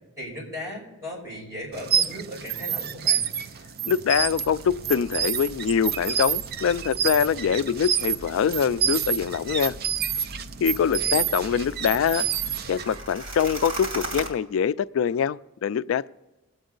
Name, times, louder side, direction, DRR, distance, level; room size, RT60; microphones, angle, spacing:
voice 1, 0.2-3.2 10.6-11.2, left 1 dB, 15° right, 5.5 m, -37 dB
sound 1, 1.7-13.0, right 8 dB, 50° right, 0.5 m, -28 dB
voice 2, 3.8-9.8 10.6-12.3 12.7-16.1, left 7 dB, 85° left, 0.3 m, -24 dB
sound 2, 4.1-14.3, right 1 dB, 80° right, 2.6 m, -40 dB
21.5 x 7.9 x 3.9 m
head